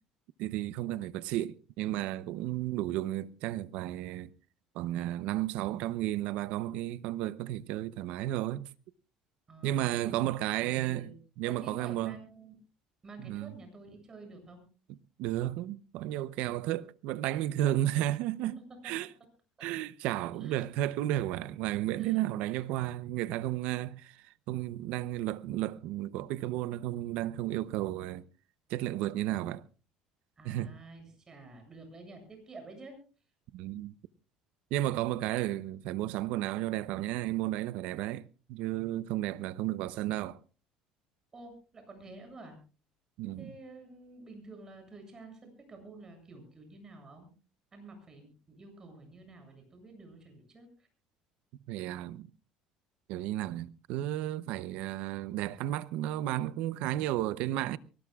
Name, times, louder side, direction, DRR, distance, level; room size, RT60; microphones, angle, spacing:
voice 1, 0.4-4.3 4.7-8.7 9.6-12.2 13.2-13.5 15.2-18.6 18.8-19.1 19.6-28.2 28.7-29.6 30.4-30.7 33.5-33.9 34.7-40.4 43.2-43.5 51.7-52.3 53.1-57.8, right 14 dB, 75° right, 0.7 m, -33 dB
voice 2, 9.5-11.1 11.4-12.6 13.0-14.6 18.6-18.7 20.3-20.6 21.9-22.3 30.4-32.9 41.3-42.6 43.4-47.3 47.7-50.9, right 2 dB, 25° right, 7.7 m, -50 dB
23.5 x 18.5 x 2.4 m
supercardioid pair, 105°, 2 cm